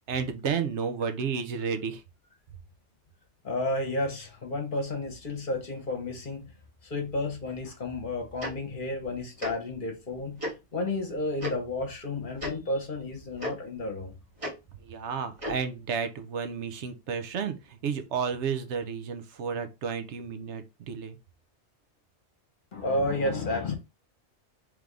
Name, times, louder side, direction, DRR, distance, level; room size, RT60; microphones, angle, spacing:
voice 1, 0.1-2.0 14.8-21.2, right 6 dB, 80° right, 1.0 m, -32 dB
voice 2, 3.4-6.5 6.8-14.1 22.7-23.7, left 2 dB, 50° left, 1.0 m, -32 dB
Tick-tock, 8.4-8.5 9.4-9.5 10.4-10.5 11.4-11.5 12.4-12.5 13.4-13.5 14.4-14.5 15.4-15.6, equal, 30° right, 1.7 m, -33 dB
3.4 x 3.4 x 3.6 m
omnidirectional pair, 1.2 m